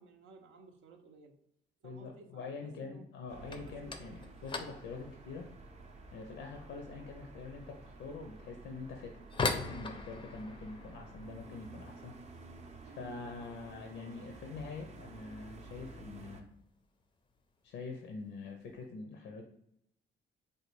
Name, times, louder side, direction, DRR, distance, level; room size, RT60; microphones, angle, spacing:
voice 1, 0.0-1.4 1.8-4.2 12.9-13.5, right 3 dB, 80° right, 4 dB, 0.6 m, -57 dB
voice 2, 1.8-5.5 6.1-12.4 12.8-16.5 17.6-19.4, left 4 dB, 80° left, 3 dB, 0.5 m, -45 dB
sound 1, 3.3-16.4, right 3 dB, 35° right, 0.5 m, -52 dB
sound 2, 3.4-14.2 14.4-15.0 15.3-15.6 15.9-16.0 16.7-16.8 17.7-18.0 18.3-18.8, left 3 dB, 25° left, 0.4 m, -42 dB
3.3 x 2.2 x 3.1 m, 0.78 s
cardioid pair, 90°, 20 cm